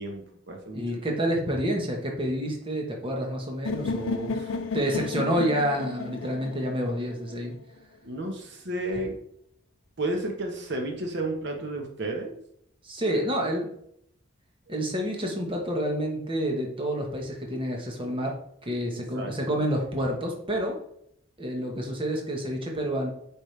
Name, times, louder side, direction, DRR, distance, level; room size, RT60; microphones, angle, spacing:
voice 1, 0.0-1.2 4.3-4.5 8.0-9.2 10.0-12.3 19.0-19.6, right 1 dB, 60° right, 2 dB, 1.2 m, -33 dB
voice 2, 0.7-4.3 4.7-7.5 12.8-13.7 14.7-18.3 18.6-20.8 21.4-23.1, equal, 25° right, 0 dB, 1.3 m, -28 dB
sound 1, 3.7-7.6, left 3 dB, 80° left, 0.6 m, -33 dB
8.7 x 5.0 x 3.4 m, 0.71 s
head